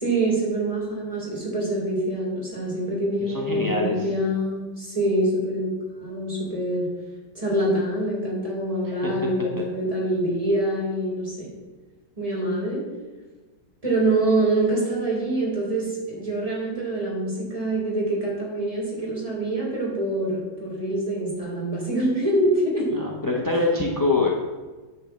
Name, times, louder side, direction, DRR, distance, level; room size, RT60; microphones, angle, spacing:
voice 1, 0.0-6.9 7.3-11.5 12.2-12.8 13.8-22.9, right 1 dB, 20° right, -5 dB, 3.2 m, -25 dB
voice 2, 3.2-4.0 8.8-9.1 22.9-24.3, left 3 dB, 25° left, -1 dB, 0.5 m, -24 dB
9.3 x 4.5 x 7.1 m, 1.3 s
omnidirectional pair, 2.1 m